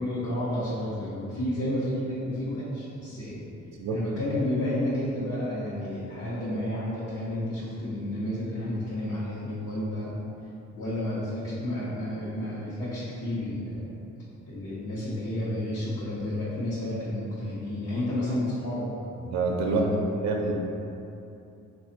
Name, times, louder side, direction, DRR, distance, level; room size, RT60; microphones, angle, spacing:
voice 1, 0.0-3.4 3.9-10.1 10.7-13.8 14.5-18.9 19.6-20.0, left 1 dB, 55° left, -10 dB, 0.9 m, -31 dB
voice 2, 19.2-19.8 20.2-20.5, right 4 dB, 65° right, 1 dB, 0.5 m, -26 dB
4.2 x 2.3 x 2.8 m, 2.7 s
cardioid pair, 90°, 30 cm